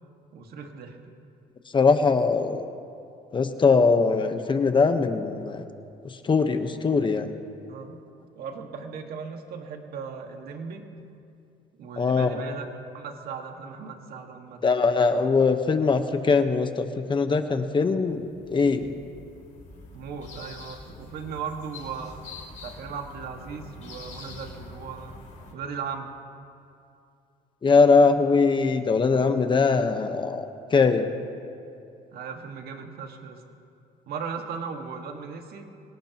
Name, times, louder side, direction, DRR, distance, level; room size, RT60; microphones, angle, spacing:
voice 1, 0.3-1.0 7.7-8.0 8.4-10.8 11.8-14.6 19.9-22.2 22.6-26.2 32.1-33.4 34.1-35.7, right 6 dB, 65° right, 3 dB, 1.9 m, -37 dB
voice 2, 1.7-2.6 3.3-5.6 6.2-7.3 12.0-12.3 14.6-18.9 27.6-30.4 30.7-31.1, left 4 dB, 30° left, 7 dB, 1.1 m, -21 dB
sound 1, 18.1-25.5, left 3 dB, 45° left, 3.4 m, -45 dB
24.5 x 18.5 x 3.0 m, 2.6 s
cardioid pair, 110°, 17 cm